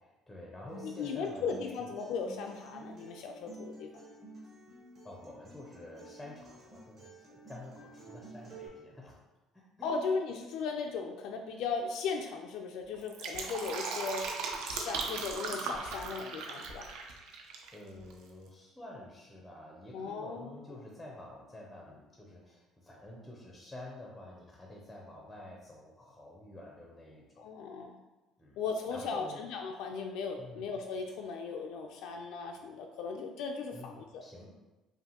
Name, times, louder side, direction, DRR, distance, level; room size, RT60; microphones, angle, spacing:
voice 1, 0.0-1.9 5.0-9.2 9.5-9.9 17.7-27.5 28.4-28.6 28.9-29.4 30.4-30.7 33.7-34.5, left 1 dB, 5° left, -2 dB, 0.5 m, -49 dB
Acoustic guitar, 0.7-8.7, right 2 dB, 35° right, 0.9 m, -51 dB
voice 2, 0.8-3.9 9.8-14.3 14.7-16.9 19.9-20.6 27.4-28.0 28.6-34.2, left 5 dB, 60° left, 2 dB, 0.3 m, -37 dB
Fill (with liquid), 12.9-17.7 18.0-18.1, right 4 dB, 75° right, 0.6 m, -38 dB
5.5 x 2.5 x 2.8 m, 1.1 s
cardioid pair, 180°, 0 cm